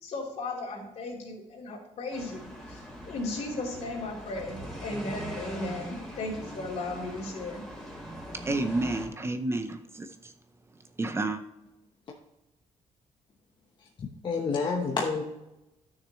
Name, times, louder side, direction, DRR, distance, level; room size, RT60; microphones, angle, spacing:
voice 1, 0.0-2.4 2.7-2.8 3.1-7.6, left 2 dB, 65° left, 3.3 m, -35 dB
sound 1, 2.1-9.1, equal, ahead, 2.8 m, -42 dB
voice 2, 8.3-10.3 11.0-11.4, right 2 dB, 20° right, 0.7 m, -30 dB
voice 3, 14.0-15.2, left 4 dB, 40° left, 1.0 m, -29 dB
11.5 x 6.6 x 3.1 m
cardioid pair, 130°, 12 cm